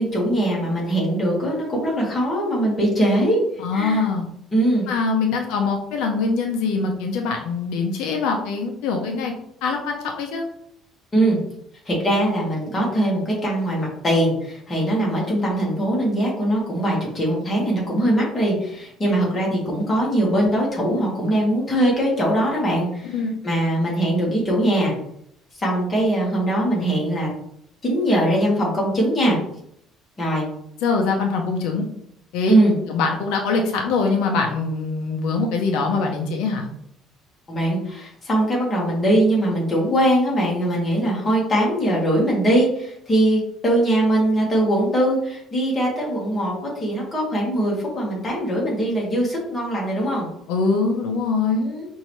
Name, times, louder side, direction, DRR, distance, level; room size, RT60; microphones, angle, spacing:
voice 1, 0.0-3.4 3.7-4.0 4.5-4.8 11.1-11.4 11.8-23.1 23.4-24.9 25.6-27.3 27.8-29.4 30.2-30.5 32.5-32.8 37.5-50.3 51.6-51.9, right 1 dB, 20° left, -4 dB, 1.6 m, -21 dB
voice 2, 3.6-4.2 4.9-9.3 9.6-10.4 23.1-23.3 30.8-31.8 32.3-32.5 32.9-36.7 50.5-51.6, left 4 dB, 85° left, 2 dB, 0.7 m, -23 dB
5.5 x 2.7 x 3.1 m, 0.73 s
cardioid pair, 155°, 0 cm